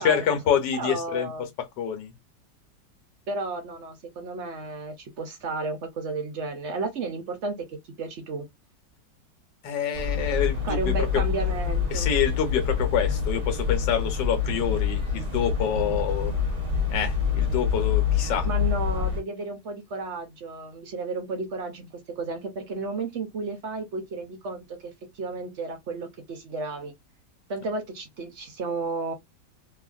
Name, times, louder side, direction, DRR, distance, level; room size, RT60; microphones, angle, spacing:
voice 1, 0.0-1.3 1.6-2.1 9.6-11.2 11.9-16.4 16.9-18.5, left 8 dB, 90° left, 1.5 m, -27 dB
voice 2, 0.7-1.5 3.3-8.5 10.6-12.1 18.4-26.9 27.5-29.1, right 3 dB, 60° right, 0.7 m, -33 dB
sound 1, 9.9-19.2, left 6 dB, 30° right, 0.8 m, -26 dB
2.9 x 2.4 x 2.4 m
omnidirectional pair, 1.9 m